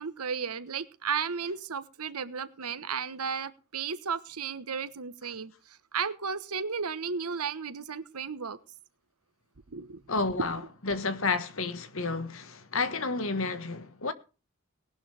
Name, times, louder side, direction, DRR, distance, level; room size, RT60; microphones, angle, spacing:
voice 1, 0.0-5.5 5.9-8.6 9.7-10.0, right 6 dB, 90° right, 1.2 m, -34 dB
voice 2, 10.1-14.1, left 3 dB, 65° left, 1.5 m, -31 dB
18.5 x 11.5 x 3.4 m
head